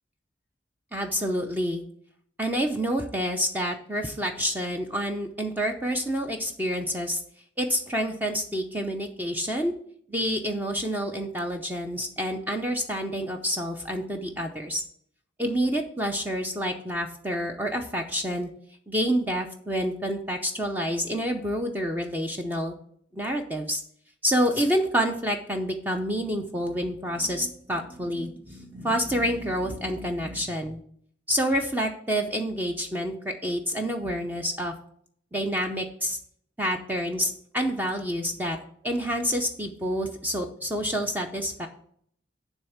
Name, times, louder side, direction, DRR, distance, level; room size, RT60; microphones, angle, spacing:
voice 1, 0.9-1.8 2.4-7.2 7.6-9.7 10.1-14.8 15.4-18.5 18.9-22.7 23.1-23.8 24.2-30.8 31.3-34.7 35.3-36.2 36.6-38.6 38.8-41.7, equal, 10° right, 3 dB, 0.6 m, -28 dB
10.0 x 3.6 x 7.1 m, 0.63 s
head